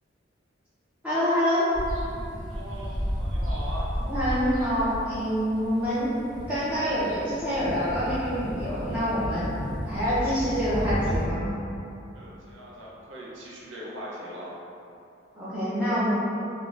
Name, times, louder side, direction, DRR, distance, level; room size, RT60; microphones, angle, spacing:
voice 1, 1.0-1.7 4.1-6.1 6.5-9.5 9.8-11.5 15.4-16.1, equal, 5° right, -12 dB, 0.5 m, -26 dB
sound 1, 1.7-11.3, equal, 55° right, 1.1 m, -33 dB
voice 2, 2.5-3.9 12.1-14.5, equal, 75° right, -5 dB, 0.6 m, -40 dB
2.5 x 2.1 x 3.1 m, 2.7 s
head